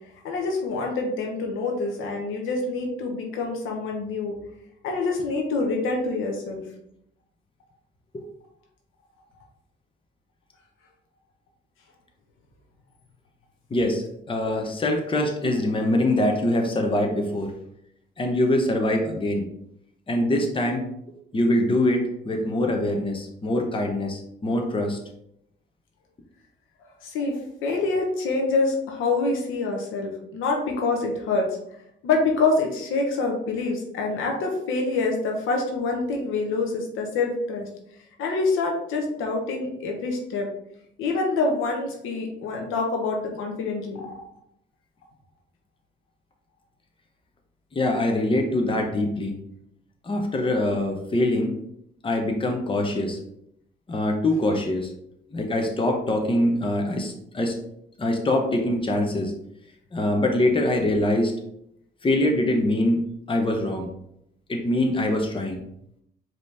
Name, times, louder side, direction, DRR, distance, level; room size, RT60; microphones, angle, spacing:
voice 1, 0.2-4.3 4.8-6.6 27.0-31.6 32.0-37.7 38.2-40.5 41.0-44.1, left 3 dB, 90° left, 1 dB, 1.0 m, -26 dB
voice 2, 13.7-17.5 18.2-19.5 20.1-20.9 21.3-25.0 47.7-49.3 50.0-51.5 52.0-53.2 53.9-54.9 55.3-57.6 58.0-59.3 59.9-61.3 62.0-63.9 64.5-65.6, left 1 dB, 25° left, 3 dB, 0.9 m, -24 dB
5.1 x 3.1 x 3.4 m, 0.75 s
cardioid pair, 90°, 20 cm